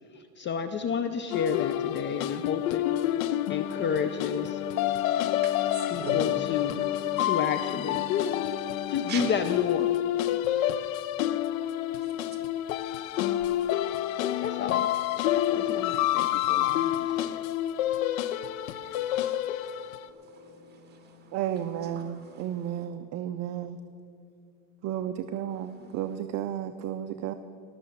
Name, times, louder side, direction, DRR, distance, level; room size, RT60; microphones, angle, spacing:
voice 1, 0.1-2.8 3.5-4.6 5.9-6.8 7.2-8.5 8.9-9.9 14.4-14.9 15.5-17.4, left 7 dB, 30° left, 9 dB, 0.5 m, -31 dB
sound 1, 1.3-20.1, left 13 dB, 85° left, 0.7 m, -28 dB
voice 2, 4.8-7.6 8.2-8.3 8.7-8.8 9.1-9.3 11.9-17.2 18.6-22.9 25.5-26.3, right 3 dB, 25° right, 2 dB, 2.8 m, -47 dB
voice 3, 21.3-23.8 24.8-27.3, right 10 dB, 40° right, 10 dB, 0.5 m, -33 dB
19.0 x 6.7 x 7.2 m, 2.5 s
supercardioid pair, 125°, 40 cm